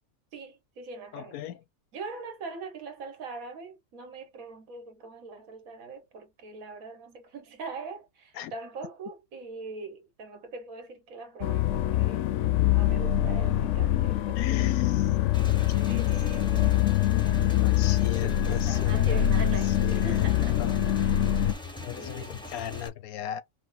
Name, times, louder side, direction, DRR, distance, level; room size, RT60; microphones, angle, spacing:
voice 1, 0.3-1.4 1.9-12.3 12.7-14.8 15.7-17.0 17.5-20.6 21.0-21.3 21.9-22.4, right 4 dB, 75° right, 1.5 m, -42 dB
voice 2, 1.1-1.6 8.4-8.5 14.4-15.1 17.3-19.2 19.6-20.3 20.6-20.7 21.8-23.4, left 12 dB, 85° left, 1.1 m, -37 dB
sound 1, 11.4-21.5, left 12 dB, 65° left, 0.8 m, -24 dB
Motorcycle / Engine, 15.3-22.9, left 3 dB, 5° left, 0.5 m, -42 dB
5.0 x 2.0 x 3.8 m
omnidirectional pair, 1.5 m